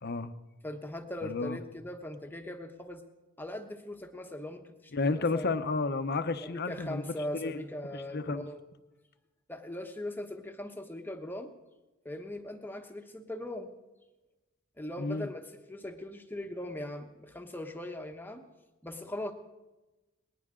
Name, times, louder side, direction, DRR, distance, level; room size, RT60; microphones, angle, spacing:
voice 1, 0.0-0.3 1.2-1.6 4.9-7.0 7.3-7.6 7.9-8.5 15.0-15.3, left 3 dB, 45° left, 10 dB, 0.8 m, -32 dB
voice 2, 0.6-3.1 3.4-5.6 6.4-8.6 9.5-11.5 12.0-13.7 14.8-18.4 18.8-19.3, left 1 dB, 10° left, 4 dB, 1.0 m, -40 dB
20.0 x 19.5 x 3.8 m, 1.1 s
head